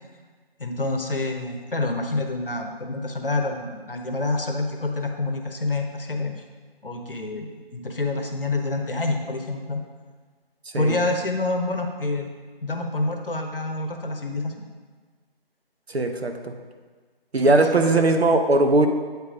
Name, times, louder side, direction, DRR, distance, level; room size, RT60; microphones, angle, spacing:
voice 1, 0.6-6.3 6.8-9.8 10.7-12.3 12.6-14.5 17.5-18.0, left 2 dB, 60° left, 4 dB, 0.9 m, -27 dB
voice 2, 15.9-16.3 17.3-18.9, right 2 dB, 85° right, 5 dB, 0.8 m, -19 dB
8.2 x 3.5 x 4.9 m, 1.5 s
figure-of-eight pair, 180°, 31 cm